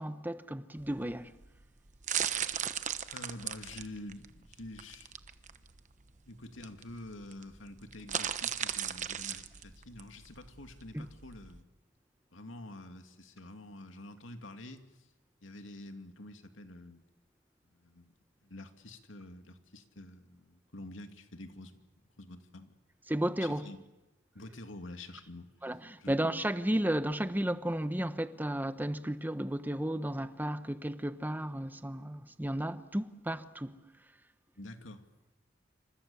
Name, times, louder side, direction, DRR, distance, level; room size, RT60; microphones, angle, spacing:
voice 1, 0.0-1.3 10.9-11.1 23.1-23.7 25.6-33.8, right 1 dB, 10° right, 1.0 m, -33 dB
sound 1, 0.8-11.6, right 9 dB, 40° right, 1.1 m, -37 dB
voice 2, 3.1-5.1 5.5-5.6 6.3-11.7 12.3-15.1 15.4-17.0 17.7-18.1 18.4-21.8 22.2-22.7 23.4-23.8 24.3-25.5 26.0-26.2 34.6-35.0, left 1 dB, 90° left, 2.6 m, -48 dB
28.0 x 26.0 x 7.1 m
head